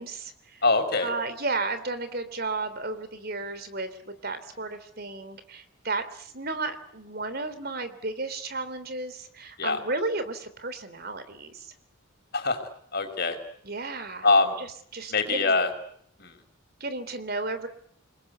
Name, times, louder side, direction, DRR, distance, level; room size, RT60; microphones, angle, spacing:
voice 1, 0.0-0.6 1.0-11.7 13.6-14.3 14.6-15.6 16.8-17.7, right 3 dB, 45° right, 11 dB, 3.4 m, -33 dB
voice 2, 0.6-1.1 9.6-9.8 12.3-13.4 14.2-14.6 15.1-15.7 16.2-16.3, left 3 dB, 50° left, 7 dB, 5.1 m, -24 dB
29.5 x 20.5 x 9.5 m, 0.68 s
head